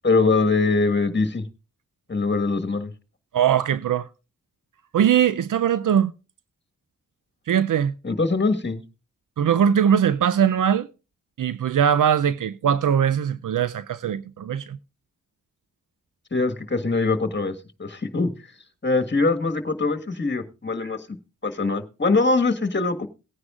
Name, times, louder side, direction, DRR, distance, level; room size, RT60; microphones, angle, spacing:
voice 1, 0.0-1.5 2.1-2.9 8.0-8.8 16.3-17.5 17.8-18.3 18.8-21.0 21.4-23.1, left 3 dB, 35° left, 1.6 m, -22 dB
voice 2, 3.3-4.1 4.9-6.1 7.5-7.9 9.4-10.9 11.4-14.8, right 8 dB, 75° right, 0.5 m, -21 dB
19.0 x 9.7 x 2.4 m
cardioid pair, 40°, 32 cm